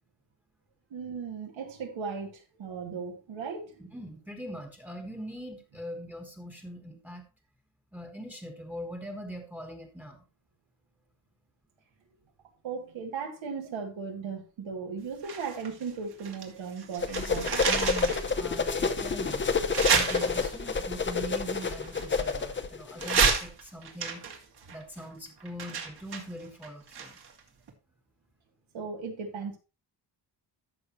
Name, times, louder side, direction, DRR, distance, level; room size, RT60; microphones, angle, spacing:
voice 1, 0.9-3.9 12.6-17.6 28.7-29.6, right 5 dB, 85° right, 2.5 m, -37 dB
voice 2, 3.8-7.2 7.9-10.2 17.7-19.4 19.9-24.2 24.7-27.2, equal, 5° right, 1.4 m, -42 dB
sound 1, 15.2-16.5 16.8-18.3 18.8-18.9 19.7-20.7 21.6-22.6 23.0-27.4 27.7-27.8, right 6 dB, 55° right, 2.1 m, -30 dB
sound 2, 17.0-23.3, left 4 dB, 25° left, 0.7 m, -29 dB
14.0 x 6.3 x 3.0 m
wide cardioid pair, 170°, 45 cm